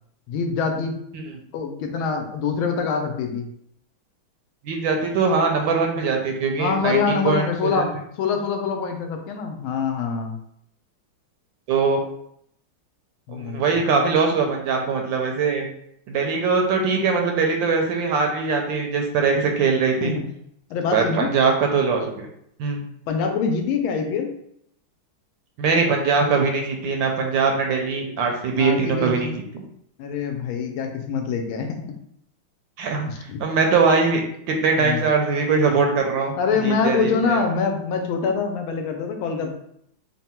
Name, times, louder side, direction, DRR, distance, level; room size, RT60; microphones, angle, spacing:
voice 1, 0.3-1.0 1.5-3.5 6.6-7.9 8.2-10.4 13.3-13.8 20.0-20.3 20.7-21.3 23.1-24.3 28.5-29.3 30.0-31.8 33.1-33.4 34.8-35.0 36.4-39.5, left 5 dB, 80° left, 4 dB, 1.4 m, -25 dB
voice 2, 4.6-7.8 11.7-12.0 13.3-15.7 16.1-20.1 20.9-22.3 22.6-22.8 25.6-29.4 32.8-36.3 36.6-37.4, right 4 dB, 75° right, 2 dB, 1.2 m, -22 dB
3.7 x 2.2 x 4.2 m, 0.72 s
omnidirectional pair, 2.3 m